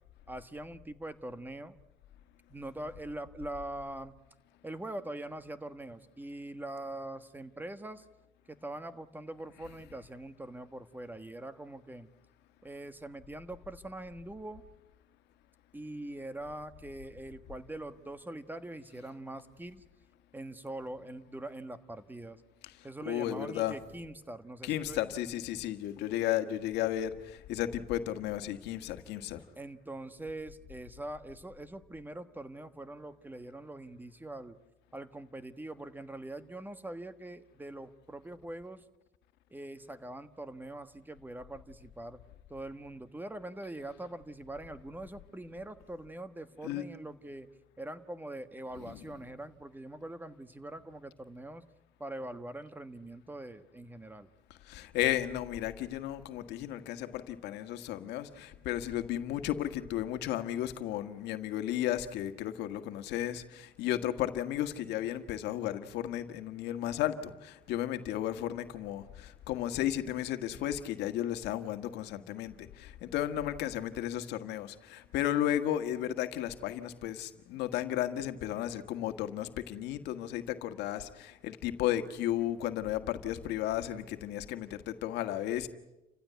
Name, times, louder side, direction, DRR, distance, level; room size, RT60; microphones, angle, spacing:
voice 1, 0.3-1.7 2.5-4.2 4.6-8.0 8.5-12.1 12.6-14.6 15.7-19.8 20.3-22.4 22.8-25.1 29.6-34.6 34.9-38.8 39.5-42.2 42.5-47.5 47.8-51.6 52.0-54.3, right 1 dB, 10° right, 1.4 m, -43 dB
voice 2, 23.1-23.8 24.6-29.4 46.6-46.8 48.9-49.0 54.6-85.7, left 12 dB, 85° left, 1.6 m, -34 dB
29.5 x 16.0 x 9.3 m
cardioid pair, 110°, 17 cm